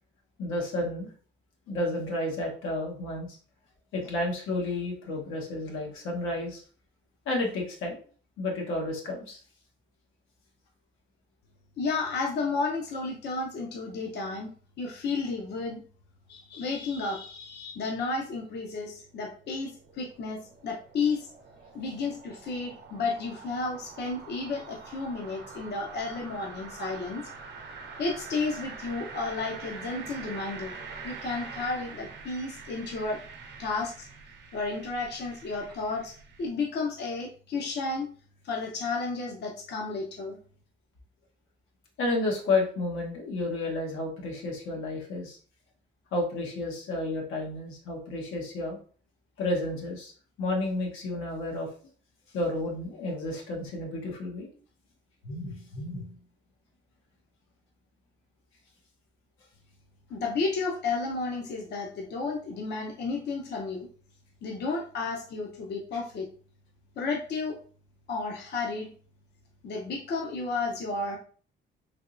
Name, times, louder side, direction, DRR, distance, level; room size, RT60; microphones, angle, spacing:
voice 1, 0.4-1.1 1.7-3.4 3.9-6.6 7.3-8.0 8.4-9.4 29.1-29.2 42.0-45.4 46.1-48.8 49.4-50.1 50.4-51.7 52.3-54.5 55.2-56.1 65.9-66.0, left 2 dB, 90° left, 0 dB, 1.0 m, -31 dB
voice 2, 11.8-14.5 14.8-15.8 16.3-21.3 21.7-27.2 28.0-30.7 31.0-33.2 33.6-34.1 34.5-38.1 38.4-40.4 60.1-63.9 64.4-66.3 67.0-67.6 68.1-68.9 69.6-71.2, left 3 dB, 60° left, 0 dB, 0.7 m, -32 dB
sound 1, 18.9-36.5, right 5 dB, 60° right, 0.7 m, -45 dB
3.4 x 2.8 x 2.4 m, 0.43 s
cardioid pair, 90°, 20 cm